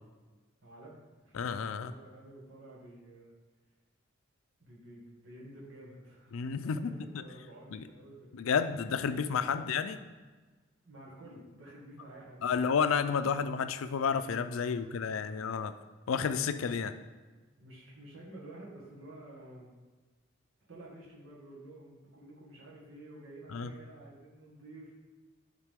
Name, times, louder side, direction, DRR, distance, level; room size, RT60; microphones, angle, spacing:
voice 1, 0.6-3.3 4.6-8.6 9.4-9.7 10.4-10.5 10.8-12.7 14.6-15.7 17.6-19.8 20.7-25.0, right 1 dB, 75° right, -6 dB, 1.8 m, -51 dB
voice 2, 1.3-1.9 6.3-7.2 7.7-7.8 8.3-10.0 12.4-15.7 16.1-16.9 23.5-23.7, left 6 dB, 80° left, 11 dB, 0.4 m, -31 dB
10.5 x 3.7 x 3.6 m, 1.3 s
head